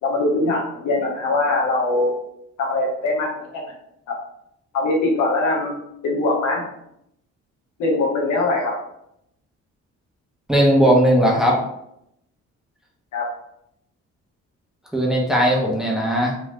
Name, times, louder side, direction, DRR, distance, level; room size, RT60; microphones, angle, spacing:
voice 1, 0.0-2.1 2.6-3.7 4.1-4.2 4.7-5.7 6.0-6.7 7.8-8.7 13.1-13.2, left 2 dB, 85° left, -2 dB, 1.0 m, -22 dB
voice 2, 10.5-11.6 14.9-16.3, equal, ahead, -3 dB, 1.0 m, -17 dB
3.7 x 2.6 x 3.2 m, 0.78 s
cardioid pair, 90°, 30 cm